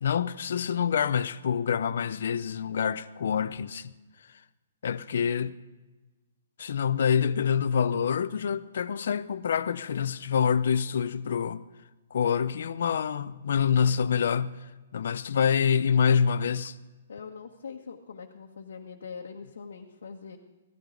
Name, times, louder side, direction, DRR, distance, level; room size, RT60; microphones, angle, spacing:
voice 1, 0.0-3.9 4.8-5.5 6.6-11.6 12.1-14.6 14.9-16.8, left 7 dB, 60° left, 0.6 m, -26 dB
voice 2, 17.1-20.4, left 5 dB, 85° left, 1.3 m, -42 dB
15.5 x 13.5 x 3.9 m
hypercardioid pair, 175°, 0 cm